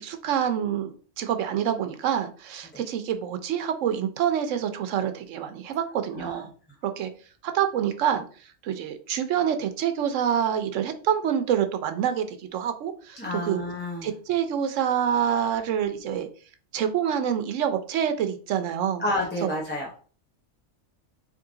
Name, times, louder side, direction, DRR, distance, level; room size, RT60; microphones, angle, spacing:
voice 1, 0.0-6.5 6.8-7.1 7.4-8.2 8.6-13.6 14.0-16.3 16.7-19.0 19.4-19.5, right 9 dB, 85° right, 8 dB, 1.0 m, -26 dB
voice 2, 13.2-14.1 19.0-19.9, left 1 dB, 10° left, -3 dB, 0.6 m, -30 dB
3.6 x 3.1 x 3.8 m, 0.41 s
omnidirectional pair, 1.3 m